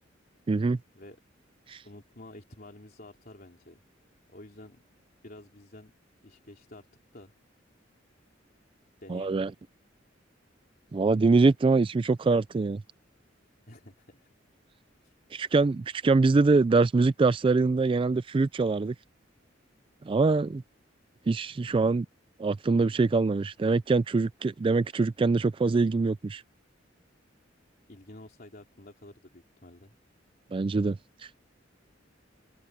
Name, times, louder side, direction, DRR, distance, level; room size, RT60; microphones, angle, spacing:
voice 1, 0.5-0.8 1.7-1.8 9.1-9.5 10.9-12.8 15.3-18.9 20.1-20.6 21.3-22.1 22.4-26.4 30.5-31.4, right 3 dB, 25° right, 0.3 m, -24 dB
voice 2, 1.8-3.8 4.3-4.8 5.2-5.9 6.2-6.9 7.1-7.3 9.0-9.4 13.7-14.3 15.0-15.1 27.9-29.9, left 1 dB, 50° left, 3.5 m, -49 dB
open air
head